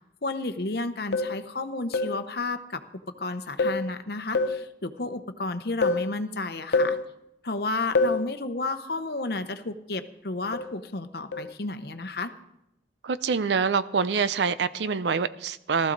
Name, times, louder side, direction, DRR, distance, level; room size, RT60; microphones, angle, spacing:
voice 1, 0.2-2.8 3.2-7.0 7.4-12.3, left 2 dB, 60° left, 0.8 m, -32 dB
sound 1, 1.1-1.4 1.9-2.2 3.6-3.9 4.3-4.7 5.8-6.1 6.7-7.1 8.0-8.3 10.5-10.8 11.3-11.5, left 3 dB, 90° left, 0.6 m, -25 dB
sound 2, 5.8-7.2, right 2 dB, 10° right, 5.8 m, -58 dB
voice 2, 13.0-15.9, right 5 dB, 80° right, 0.5 m, -25 dB
15.5 x 13.5 x 4.0 m
head